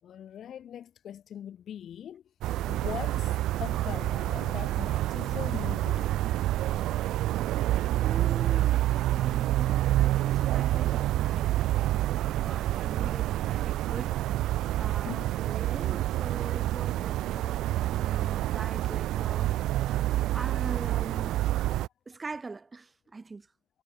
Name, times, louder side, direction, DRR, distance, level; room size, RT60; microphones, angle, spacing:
voice 1, 0.0-2.2 2.7-6.1 7.3-7.4 12.5-13.1 14.9-15.3, left 9 dB, 60° left, 7.1 m, -41 dB
sound 1, 2.4-21.9, right 14 dB, 70° right, 1.5 m, -28 dB
voice 2, 8.0-14.5 14.8-17.7 17.9-19.5 20.3-21.4 22.1-23.5, right 3 dB, 30° right, 7.7 m, -42 dB
hypercardioid pair, 55°, 0 cm